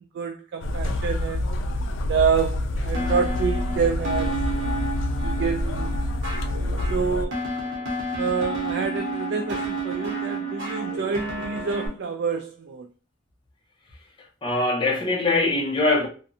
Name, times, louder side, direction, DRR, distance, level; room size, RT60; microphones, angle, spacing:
voice 1, 0.1-1.5 2.1-4.5 4.9-6.0 6.9-7.4 8.2-12.9, right 6 dB, 65° right, 0.3 m, -27 dB
sound 1, 0.6-7.3, left 1 dB, 85° left, 0.3 m, -27 dB
sound 2, 2.9-11.9, right 2 dB, 85° right, 0.9 m, -31 dB
voice 2, 14.4-16.1, left 2 dB, 25° left, 0.7 m, -22 dB
2.5 x 2.2 x 2.6 m
head